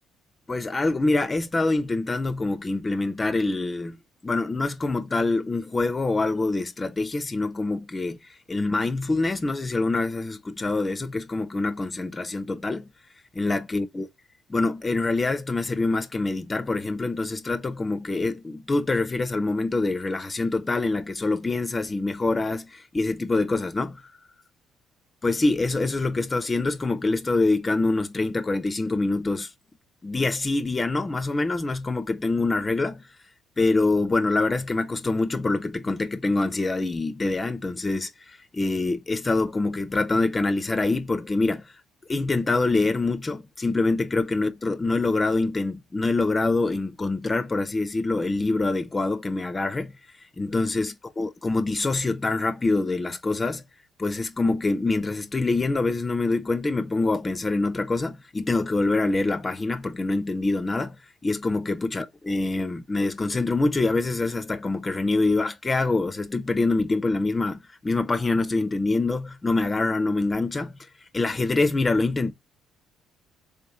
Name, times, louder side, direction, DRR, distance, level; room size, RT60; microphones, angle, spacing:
voice 1, 0.5-8.2 8.5-12.9 13.4-14.1 14.5-24.0 25.2-29.5 30.0-33.0 33.6-41.6 42.1-49.9 50.4-53.6 54.0-61.0 61.2-70.7 71.1-72.3, left 3 dB, 20° left, 0.4 m, -25 dB
3.5 x 2.9 x 3.4 m
cardioid pair, 115°, 0 cm